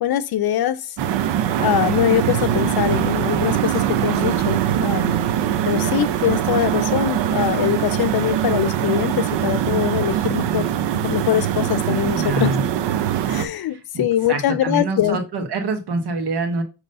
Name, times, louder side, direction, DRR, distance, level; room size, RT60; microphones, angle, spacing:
voice 1, 0.0-0.9 1.6-5.1 5.6-10.7 11.0-12.5 13.3-15.2, left 11 dB, 60° left, 0.6 m, -22 dB
sound 1, 1.0-13.5, right 10 dB, 85° right, 0.8 m, -22 dB
voice 2, 12.1-12.7 13.9-16.6, right 3 dB, 70° right, 1.4 m, -25 dB
6.5 x 3.1 x 5.3 m
cardioid pair, 75°, 41 cm